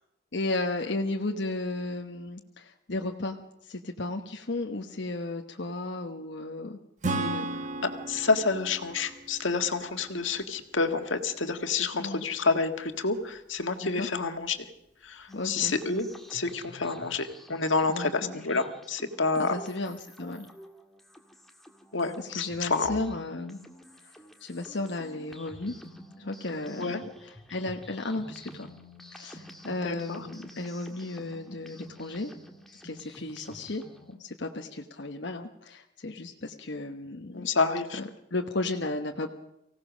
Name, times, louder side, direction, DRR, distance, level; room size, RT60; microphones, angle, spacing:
voice 1, 0.3-3.4 3.6-6.8 7.1-7.5 12.0-12.2 13.8-14.1 15.3-15.7 17.9-18.4 19.4-20.5 22.2-23.6 24.0-24.1 24.4-25.7 26.2-27.0 27.5-28.7 29.1-32.3 32.7-37.5 38.0-39.3, left 2 dB, 65° left, 3 dB, 1.1 m, -34 dB
Acoustic guitar / Strum, 7.0-10.6, right 2 dB, 40° right, 1.3 m, -35 dB
voice 2, 8.1-14.7 15.0-19.6 21.9-23.0 26.8-27.0 29.8-30.2 37.3-38.0, left 4 dB, 85° left, 7 dB, 1.7 m, -29 dB
sound 1, 15.3-34.2, equal, ahead, 1.7 m, -49 dB
24.5 x 17.0 x 6.3 m, 0.84 s
head